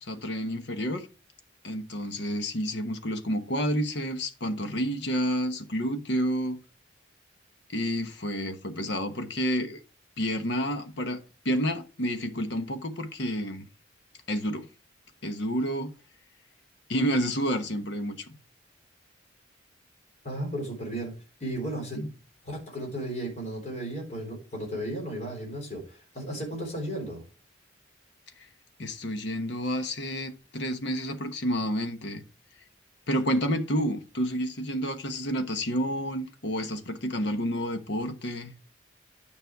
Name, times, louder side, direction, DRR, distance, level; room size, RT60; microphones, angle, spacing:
voice 1, 0.0-1.1 1.6-6.6 7.7-9.8 10.2-11.2 11.4-13.7 14.3-14.7 15.2-15.9 16.9-18.3 21.9-22.1 28.4-28.5 28.8-32.2 33.1-38.5, equal, 60° left, 1.1 m, -29 dB
voice 2, 20.2-21.1 21.4-22.0 22.4-27.2, right 1 dB, 35° left, 3.8 m, -34 dB
9.6 x 5.4 x 4.7 m
head